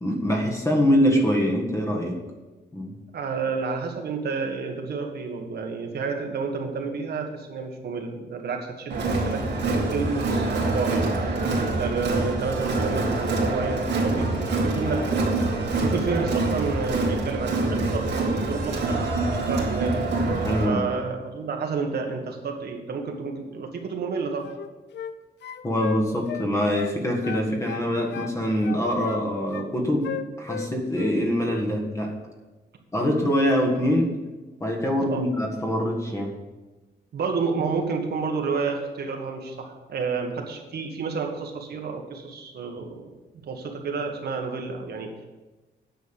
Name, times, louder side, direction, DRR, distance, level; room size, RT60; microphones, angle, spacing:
voice 1, 0.0-2.2 2.7-3.0 20.4-20.9 25.6-32.2 32.9-34.1 34.6-36.3, equal, 15° left, 1 dB, 1.8 m, -24 dB
voice 2, 3.1-11.1 11.8-15.3 15.8-20.0 20.6-24.4 35.0-35.2 37.1-43.0 43.4-45.1, right 4 dB, 65° right, 2 dB, 1.6 m, -30 dB
Crowd, 8.9-20.6, right 2 dB, 85° right, 2.5 m, -25 dB
sound 1, 24.4-25.2 25.4-27.0 27.2-28.4 28.6-29.7 30.0-31.1 31.4-31.7, left 9 dB, 85° left, 0.6 m, -35 dB
9.3 x 6.6 x 7.0 m, 1.2 s
wide cardioid pair, 145°, 18 cm